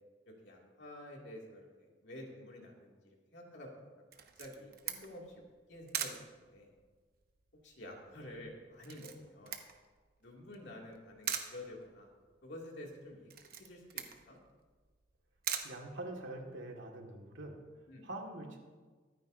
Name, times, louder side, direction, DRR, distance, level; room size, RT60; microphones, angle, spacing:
voice 1, 0.3-3.7 4.4-6.7 7.6-9.6 10.2-12.1 12.4-13.3 13.6-14.4 17.9-18.0, left 1 dB, 65° left, -1 dB, 2.5 m, -50 dB
Camera, 4.1-16.6, right 8 dB, 50° right, 1.0 m, -44 dB
voice 2, 15.6-17.6 18.0-18.6, right 1 dB, 80° right, 1 dB, 2.0 m, -44 dB
24.0 x 9.4 x 2.7 m, 1.4 s
head